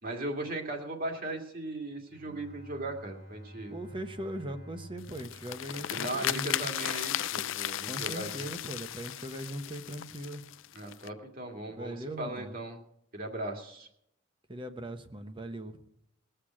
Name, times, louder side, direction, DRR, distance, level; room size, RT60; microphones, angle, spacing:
voice 1, 0.0-3.8 5.9-8.5 10.7-12.8 13.1-13.9, right 2 dB, 45° right, 2 dB, 2.1 m, -38 dB
Bowed string instrument, 2.1-7.8, right 1 dB, 85° right, 4.7 m, -51 dB
voice 2, 3.7-6.7 7.9-10.4 11.7-12.6 14.5-15.9, right 1 dB, 25° right, 7 dB, 1.0 m, -40 dB
sound 1, 5.0-11.1, left 12 dB, 80° left, 0.4 m, -35 dB
19.5 x 6.8 x 7.5 m, 0.75 s
head